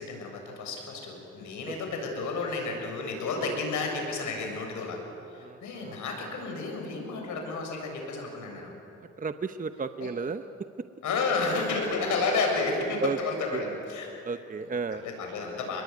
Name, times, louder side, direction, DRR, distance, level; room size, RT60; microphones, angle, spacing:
voice 1, 0.0-5.0 5.3-8.7 10.0-10.1 11.0-14.1 15.0-15.8, left 3 dB, 75° left, 2 dB, 7.4 m, -31 dB
voice 2, 5.4-6.0 9.2-10.4 13.0-13.2 13.5-13.6 14.2-15.0, right 5 dB, 25° right, 10 dB, 0.9 m, -33 dB
29.0 x 21.5 x 9.5 m, 2.7 s
cardioid pair, 90°, 30 cm